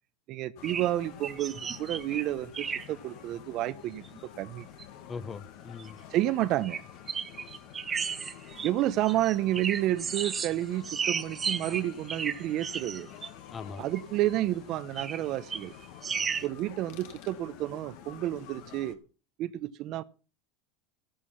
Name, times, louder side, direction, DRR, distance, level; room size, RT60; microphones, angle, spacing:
voice 1, 0.3-4.1 4.4-4.7 6.1-6.8 8.6-13.1 13.8-15.7 16.4-19.0 19.4-20.0, right 14 dB, 50° right, 0.8 m, -30 dB
sound 1, 0.6-18.9, left 10 dB, 65° left, 1.9 m, -49 dB
sound 2, 0.6-0.9 1.2-2.2 2.5-2.9 4.0-4.1 4.6-4.8 5.8-5.9 6.6-6.8 7.1-10.6 10.8-13.3 14.0-14.1 15.0-15.3 15.5-16.5, right 6 dB, 25° right, 1.0 m, -34 dB
voice 2, 5.1-6.0 13.5-13.8, left 5 dB, 25° left, 1.1 m, -40 dB
13.0 x 11.5 x 5.8 m
supercardioid pair, 135°, 0 cm